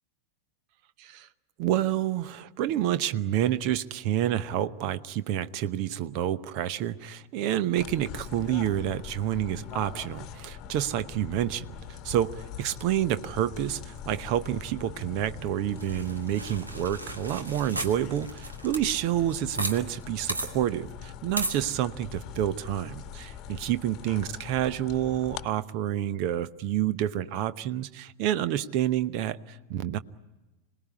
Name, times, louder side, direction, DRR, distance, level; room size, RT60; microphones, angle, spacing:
voice 1, 1.6-12.3 12.6-30.0, right 11 dB, 45° right, 15 dB, 0.9 m, -29 dB
sound 1, 7.8-25.5, left 8 dB, 35° left, 1.2 m, -43 dB
sound 2, 15.8-19.8 20.0-20.1 20.3-20.5 21.4-21.6, right 2 dB, 80° right, 2.1 m, -34 dB
26.5 x 19.0 x 9.7 m, 1.1 s
figure-of-eight pair, 90°, 0 cm